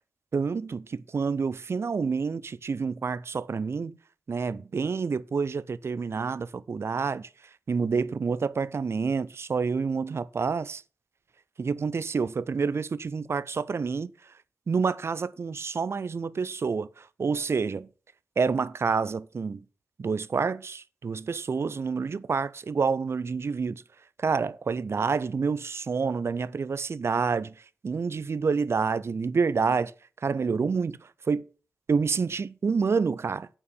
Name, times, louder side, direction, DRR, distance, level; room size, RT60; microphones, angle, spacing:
voice 1, 0.3-4.0 4.3-7.3 7.7-10.8 11.6-14.1 14.7-17.9 18.4-19.6 20.0-23.8 24.2-27.6 27.8-29.9 30.2-31.4 31.9-33.5, right 5 dB, 55° right, 0.5 m, -28 dB
8.9 x 4.3 x 7.0 m
cardioid pair, 50°, 5 cm